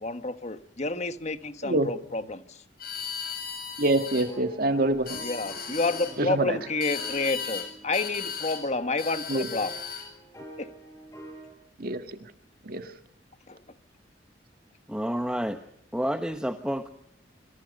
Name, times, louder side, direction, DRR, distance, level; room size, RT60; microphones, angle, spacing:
voice 1, 0.0-2.6 5.2-9.7 10.6-10.7 13.5-13.6, left 3 dB, 35° left, 1.5 m, -30 dB
sound 1, 2.8-4.3 4.9-6.1 6.8-7.7 7.9-8.6 9.0-10.1, left 6 dB, 55° left, 7.4 m, -36 dB
voice 2, 3.8-5.2 6.2-6.6 9.3-9.5 11.8-12.0 12.7-12.8, right 2 dB, 50° right, 1.8 m, -25 dB
sound 2, 4.2-11.5, right 1 dB, 15° left, 6.9 m, -47 dB
voice 3, 14.9-15.6 15.9-16.9, equal, 5° right, 1.2 m, -29 dB
26.5 x 26.0 x 5.4 m
head